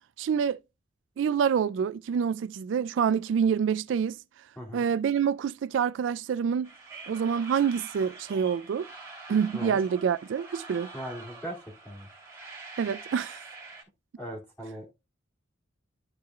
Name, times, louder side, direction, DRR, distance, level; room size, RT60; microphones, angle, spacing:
voice 1, 0.2-0.6 1.2-4.2 4.7-6.7 7.1-8.9 9.3-10.9 12.8-13.4, right 7 dB, 70° right, 0.3 m, -27 dB
sound 1, 6.6-13.8, right 3 dB, 15° right, 3.3 m, -45 dB
voice 2, 10.9-11.6 11.8-12.1 14.2-14.9, right 1 dB, 10° left, 2.7 m, -39 dB
12.5 x 4.6 x 2.4 m
head